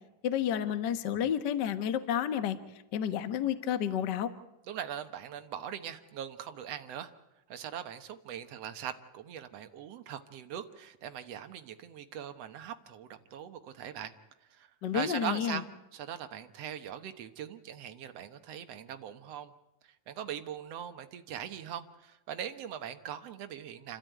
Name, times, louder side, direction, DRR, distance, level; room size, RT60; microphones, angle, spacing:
voice 1, 0.2-2.6 2.9-4.3 14.8-15.6, left 9 dB, 80° left, 11 dB, 0.9 m, -30 dB
voice 2, 4.7-7.1 7.5-14.1 14.4-15.6 15.9-19.5 19.8-24.0, right 9 dB, 60° right, 8 dB, 1.9 m, -41 dB
29.5 x 13.0 x 9.2 m, 0.93 s
omnidirectional pair, 4.0 m